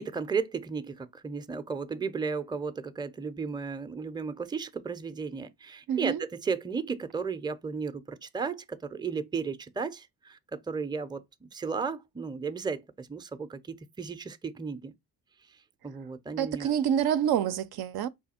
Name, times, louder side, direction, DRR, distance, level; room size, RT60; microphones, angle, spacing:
voice 1, 0.0-14.9 15.8-16.7, right 5 dB, 10° right, 0.5 m, -34 dB
voice 2, 5.9-6.2 16.4-18.1, right 9 dB, 65° right, 0.5 m, -27 dB
4.9 x 2.3 x 4.2 m
supercardioid pair, 55°, 41 cm